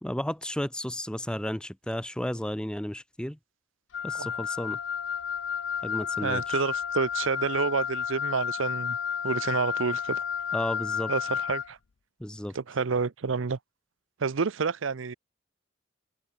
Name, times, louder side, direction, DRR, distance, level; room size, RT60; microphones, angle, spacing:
voice 1, 0.0-3.4 4.0-4.8 5.8-6.6 10.5-11.1 12.2-12.6, left 1 dB, 5° left, 0.5 m, -33 dB
Wind instrument woodwind instrument, 3.9-11.7, left 7 dB, 60° left, 0.5 m, -31 dB
voice 2, 6.2-9.0 9.2-10.2 11.1-11.8 12.5-13.6 14.2-15.1, right 5 dB, 75° right, 0.6 m, -29 dB
head